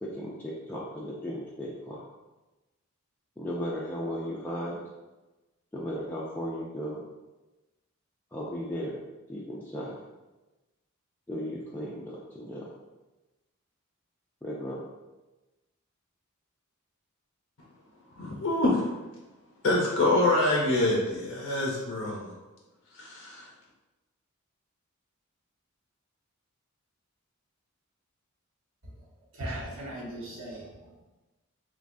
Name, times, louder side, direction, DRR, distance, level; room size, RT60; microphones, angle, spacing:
voice 1, 0.0-2.0 3.4-4.8 5.7-7.0 8.3-9.0 9.3-10.0 11.3-12.7 14.4-14.8, equal, 10° left, -6 dB, 0.4 m, -35 dB
voice 2, 18.2-18.9 19.6-22.3 22.9-23.5, left 2 dB, 65° left, -2 dB, 0.6 m, -26 dB
voice 3, 29.3-31.0, right 1 dB, 75° right, -5 dB, 1.1 m, -39 dB
3.5 x 3.1 x 2.5 m, 1.1 s
head